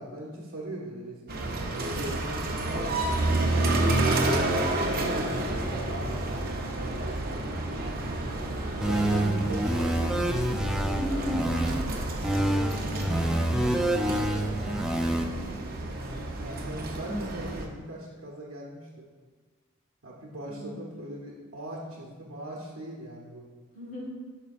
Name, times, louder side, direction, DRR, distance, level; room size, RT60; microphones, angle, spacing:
voice 1, 0.0-2.6 3.5-5.5 5.8-8.2 8.7-11.6 16.3-19.1 20.0-23.5, right 1 dB, 75° right, -3 dB, 0.9 m, -40 dB
sound 1, 1.3-17.6, right 2 dB, 45° right, 0.7 m, -30 dB
sound 2, 8.8-11.8 12.2-15.2, right 1 dB, 5° right, 0.3 m, -27 dB
voice 2, 10.9-12.1 12.4-15.6 20.4-20.8 23.7-24.1, equal, 40° left, -3 dB, 1.5 m, -38 dB
9.1 x 5.5 x 2.5 m, 1.4 s
head